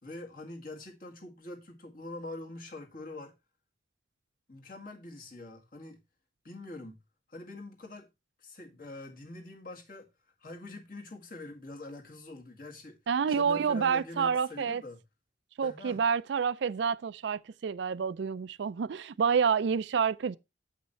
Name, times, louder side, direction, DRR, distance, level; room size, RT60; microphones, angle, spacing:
voice 1, 0.0-3.3 4.5-6.0 6.4-7.0 7.3-8.1 8.4-10.1 10.4-13.0 13.3-15.0 15.6-16.0, left 2 dB, 45° left, 1.8 m, -44 dB
voice 2, 13.1-14.8 15.6-20.4, right 6 dB, 70° right, 0.4 m, -28 dB
8.0 x 5.5 x 4.2 m
head